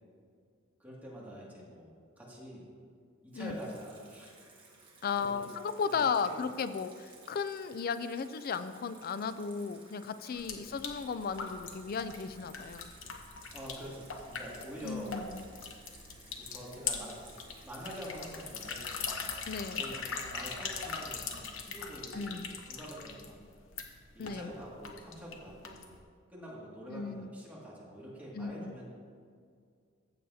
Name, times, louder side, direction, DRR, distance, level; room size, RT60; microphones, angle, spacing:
voice 1, 0.8-2.6 3.2-4.5 5.1-5.4 5.9-6.4 10.5-10.7 13.5-15.2 16.4-17.2 17.6-18.9 19.7-23.4 24.1-25.9 26.3-29.1, equal, 10° right, -6 dB, 2.1 m, -46 dB
Water tap faucet / Sink (filling or washing), 3.3-20.0, right 3 dB, 25° right, 1.5 m, -58 dB
voice 2, 5.0-12.9 14.8-15.4 19.5-19.9 22.1-22.5 24.2-24.4 26.9-27.3 28.3-28.8, left 5 dB, 50° left, 12 dB, 0.4 m, -35 dB
sound 1, 10.3-26.0, left 5 dB, 85° left, 0.9 m, -41 dB
15.0 x 7.2 x 2.7 m, 2.1 s
head